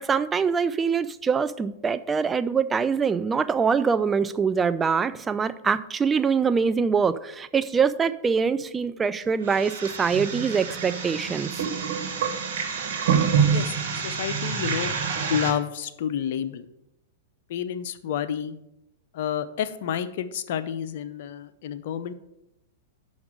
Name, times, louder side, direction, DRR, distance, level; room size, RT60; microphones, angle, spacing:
voice 1, 0.0-11.6, right 6 dB, 15° right, 0.4 m, -24 dB
sound 1, 9.4-15.5, right 6 dB, 60° right, 1.6 m, -27 dB
voice 2, 13.5-14.9 15.3-16.7 17.5-18.6 19.1-22.1, left 9 dB, 60° left, 0.6 m, -30 dB
5.9 x 5.2 x 6.6 m
hypercardioid pair, 110°, 0 cm